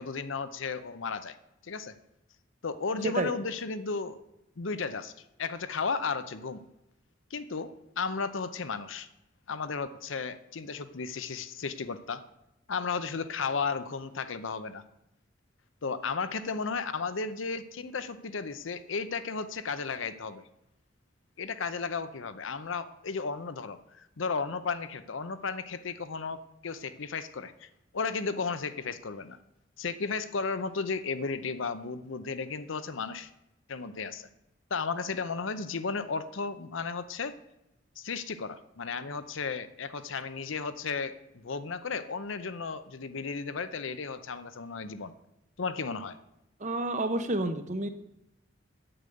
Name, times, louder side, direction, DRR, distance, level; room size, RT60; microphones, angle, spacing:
voice 1, 0.0-1.4 1.6-2.0 2.6-4.2 4.6-5.1 5.4-6.6 7.3-9.1 9.5-12.2 12.7-14.8 15.8-20.4 21.4-29.4 29.8-33.3 33.7-34.3 34.7-37.3 38.0-45.1 45.6-46.2, left 5 dB, 70° left, 12 dB, 0.7 m, -34 dB
voice 2, 46.6-47.9, right 2 dB, 35° right, 10 dB, 0.9 m, -29 dB
8.7 x 6.8 x 7.9 m, 0.87 s
head